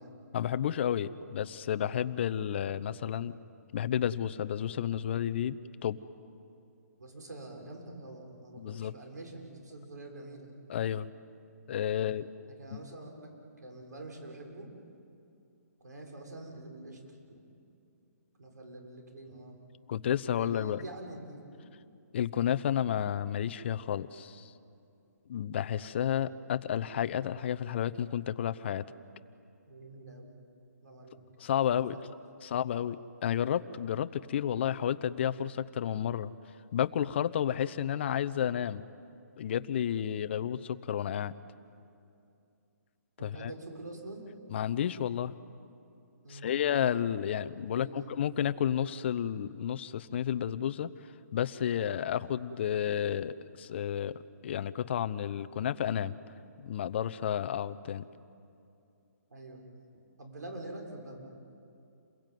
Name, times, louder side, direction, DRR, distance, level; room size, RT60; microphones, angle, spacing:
voice 1, 0.3-3.3 3.7-5.6 5.8-6.0 8.6-8.9 10.7-11.1 11.7-12.3 12.7-12.8 19.9-20.8 22.1-24.5 25.3-28.8 31.4-32.0 32.4-36.3 36.7-38.8 39.4-41.3 43.2-43.5 44.5-45.3 46.3-50.9 51.3-56.1 56.6-58.1, left 9 dB, 40° left, 13 dB, 0.8 m, -31 dB
voice 2, 7.0-10.5 11.9-12.1 12.5-13.3 13.6-14.7 15.8-17.0 18.4-19.6 20.3-21.7 29.7-30.4 30.8-31.3 31.6-32.0 32.3-32.5 43.2-44.3 46.2-46.6 47.7-48.1 59.3-59.6 60.2-61.2, right 2 dB, 90° right, 2 dB, 6.5 m, -46 dB
29.0 x 22.0 x 9.3 m, 2.6 s
hypercardioid pair, 160°, 9 cm